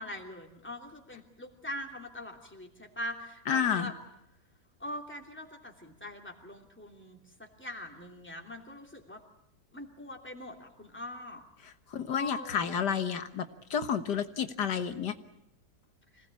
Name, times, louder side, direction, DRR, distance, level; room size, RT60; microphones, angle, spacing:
voice 1, 0.0-3.9 4.8-7.2 7.6-9.2 9.7-11.4 12.1-12.8, left 1 dB, 5° left, 2 dB, 2.9 m, -42 dB
voice 2, 3.5-3.9 11.6-13.5 13.7-15.1, left 7 dB, 80° left, 9 dB, 2.0 m, -30 dB
26.0 x 19.0 x 8.5 m, 0.82 s
omnidirectional pair, 1.8 m